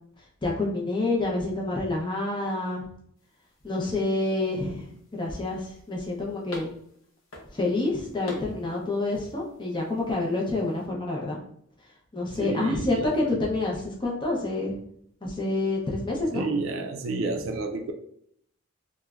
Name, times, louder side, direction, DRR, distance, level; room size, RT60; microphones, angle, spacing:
voice 1, 0.2-2.9 3.6-6.7 7.5-11.4 11.8-14.8 15.2-16.5, left 2 dB, 20° left, -2 dB, 0.6 m, -28 dB
sound 1, 3.2-10.9, equal, 60° left, 0.7 m, -48 dB
voice 2, 12.4-13.1 16.3-17.9, right 3 dB, 65° right, 5 dB, 0.3 m, -30 dB
3.0 x 2.2 x 2.3 m, 0.67 s
head